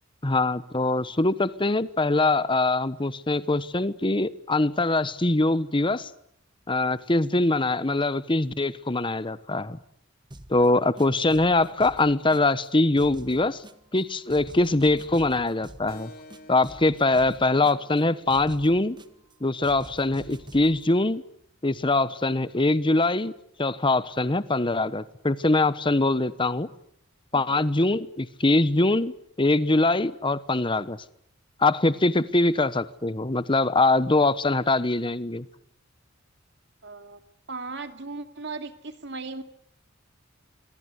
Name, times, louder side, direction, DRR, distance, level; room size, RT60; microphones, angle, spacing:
voice 1, 0.2-6.1 6.7-9.8 10.5-13.6 13.9-16.1 16.5-19.0 19.4-21.2 21.6-23.3 23.6-26.7 27.3-31.0 31.6-35.4, left 2 dB, 25° left, 15 dB, 1.1 m, -23 dB
sound 1, 10.3-10.7 11.0-12.7 13.0-14.0 14.3-16.0 16.3-18.0 18.3-19.3 19.6-20.8, right 1 dB, 25° right, 1.4 m, -46 dB
Keyboard (musical), 15.9-21.0, left 1 dB, 50° left, 5.4 m, -53 dB
voice 2, 27.3-27.6 36.8-37.2 37.5-39.4, right 3 dB, 60° right, 8 dB, 2.5 m, -37 dB
26.5 x 23.5 x 8.2 m, 0.73 s
head